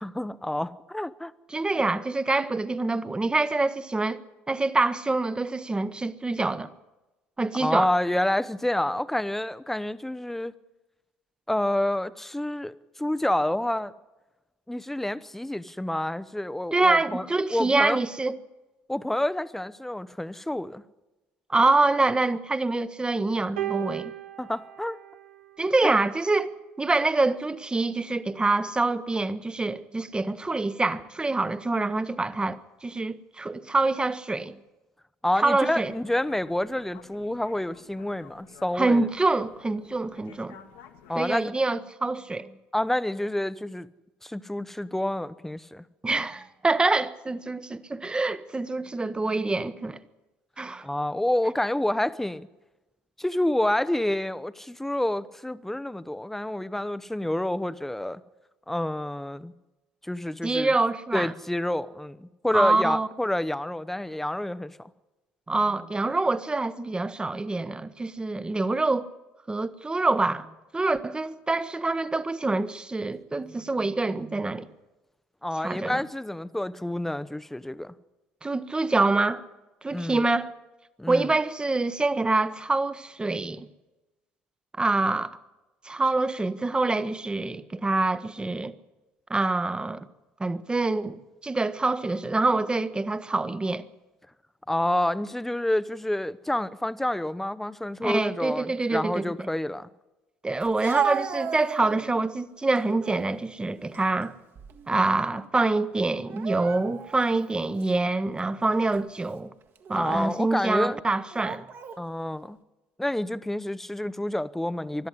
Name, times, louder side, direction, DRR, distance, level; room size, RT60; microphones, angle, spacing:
voice 1, 0.0-1.3 7.6-10.5 11.5-13.9 14.7-18.0 18.9-20.8 24.4-25.0 25.8-25.9 35.2-39.1 41.1-41.5 42.7-43.9 44.2-45.8 50.8-52.5 53.2-58.2 58.7-59.5 60.0-60.7 61.1-64.9 75.4-77.9 79.9-80.2 81.0-81.3 94.7-99.9 109.9-111.0 112.0-112.6 113.0-115.1, left 1 dB, 5° left, 0.8 m, -28 dB
voice 2, 1.5-4.2 4.5-6.7 7.4-7.9 16.7-18.4 21.5-24.1 25.6-26.5 26.8-34.6 35.4-35.9 38.7-40.6 41.1-42.5 46.0-50.0 50.6-50.9 60.4-61.3 62.5-63.1 65.5-69.1 69.5-70.5 70.7-74.7 75.6-76.0 78.4-79.4 79.8-80.5 81.1-83.7 84.8-85.4 85.8-88.7 89.3-90.0 90.4-93.9 98.0-99.5 100.4-104.3 104.9-109.5 109.9-111.6, right 3 dB, 15° right, 1.1 m, -26 dB
sound 1, 23.6-26.0 27.1-27.2, right 12 dB, 75° right, 1.4 m, -36 dB
sound 2, 35.6-41.4, left 8 dB, 65° left, 1.7 m, -53 dB
Speech, 100.6-102.3 102.8-103.3 103.8-105.0 105.3-105.5 106.3-107.2 107.8-107.9 108.7-109.0 109.8-110.5 111.3-112.0, right 8 dB, 45° right, 1.6 m, -34 dB
21.0 x 13.0 x 9.9 m
figure-of-eight pair, 55°, 6 cm